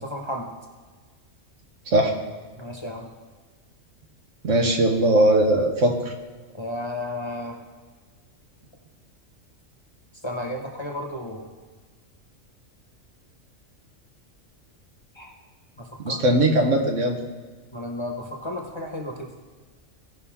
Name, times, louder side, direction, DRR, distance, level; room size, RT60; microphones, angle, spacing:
voice 1, 0.0-0.5 2.6-3.1 6.5-7.6 10.2-11.5 15.1-15.3 15.8-16.2 17.7-19.3, left 1 dB, 25° left, 0 dB, 1.0 m, -33 dB
voice 2, 4.4-6.1 16.0-17.2, right 1 dB, 75° right, 3 dB, 1.4 m, -20 dB
15.5 x 5.5 x 3.6 m, 1.4 s
omnidirectional pair, 1.3 m